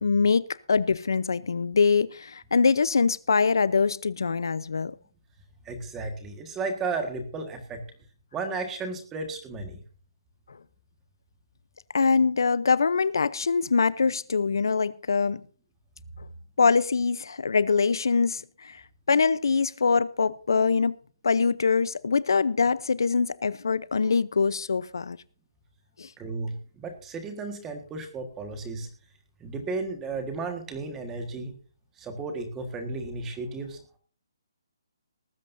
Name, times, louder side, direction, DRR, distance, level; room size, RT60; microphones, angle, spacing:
voice 1, 0.0-4.9 11.9-15.4 16.6-18.8 19.1-20.9 21.2-25.2 26.0-26.1, left 5 dB, 60° left, 0.7 m, -23 dB
voice 2, 5.6-7.8 8.3-9.8 26.2-28.9 29.4-31.5 32.0-33.8, right 3 dB, 10° right, 1.6 m, -34 dB
19.0 x 15.0 x 2.7 m
hypercardioid pair, 180°, 2 cm